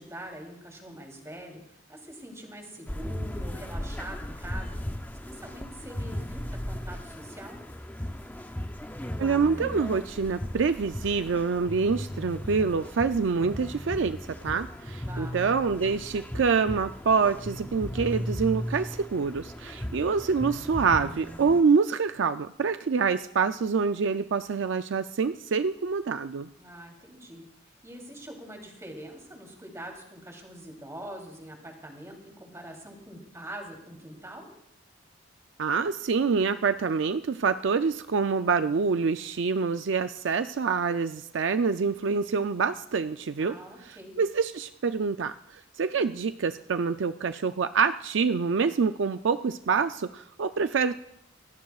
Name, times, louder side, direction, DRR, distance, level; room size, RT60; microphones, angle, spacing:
voice 1, 0.0-5.0 5.3-7.6 15.1-15.4 26.6-27.4 27.8-34.5 43.4-44.2, right 1 dB, 15° right, 1 dB, 3.2 m, -44 dB
sound 1, 2.9-21.6, equal, 10° left, 0.6 m, -37 dB
voice 2, 9.2-26.5 35.6-43.6 43.8-50.9, right 5 dB, 70° right, 10 dB, 0.4 m, -26 dB
25.5 x 17.5 x 2.4 m, 0.76 s
head